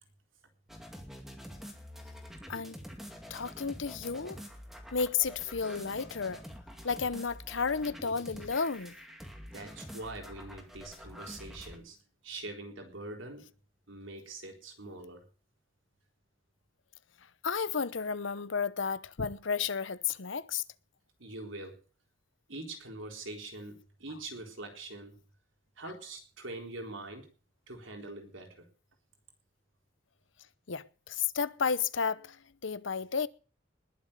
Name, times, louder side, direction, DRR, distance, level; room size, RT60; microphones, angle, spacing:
sound 1, 0.7-11.8, equal, ahead, 2.3 m, -47 dB
voice 1, 3.3-4.4 4.9-6.4 6.8-8.9 17.4-20.6 30.7-32.4 32.6-33.3, left 6 dB, 70° left, 0.8 m, -32 dB
voice 2, 9.5-12.0 12.2-13.5 13.9-15.2 21.2-21.8 22.5-25.2 25.8-27.3 27.7-28.7, right 2 dB, 75° right, 4.0 m, -43 dB
20.5 x 7.4 x 6.8 m
head